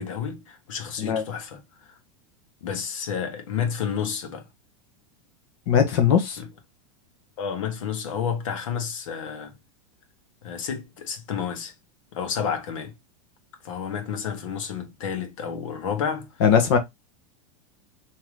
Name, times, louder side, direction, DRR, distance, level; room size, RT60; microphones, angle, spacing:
voice 1, 0.0-1.6 1.9-2.0 2.6-4.4 6.4-6.5 7.4-9.5 10.4-11.7 12.1-12.9 13.6-16.3, left 7 dB, 80° left, 1.2 m, -30 dB
voice 2, 5.7-6.4 16.4-16.8, left 7 dB, 50° left, 1.0 m, -19 dB
3.7 x 2.9 x 3.2 m
supercardioid pair, 180°, 17 cm